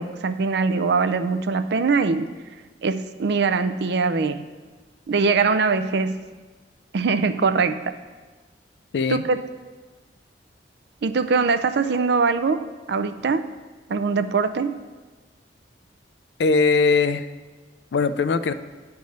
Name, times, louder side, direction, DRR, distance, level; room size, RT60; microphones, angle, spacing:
voice 1, 0.0-2.3 2.8-4.4 5.1-6.2 6.9-8.0 9.1-9.4 11.0-13.5 13.9-14.7, right 4 dB, 65° right, 10 dB, 0.4 m, -22 dB
voice 2, 16.4-17.3 17.9-18.5, left 4 dB, 70° left, 12 dB, 0.4 m, -20 dB
10.5 x 3.5 x 6.4 m, 1.3 s
head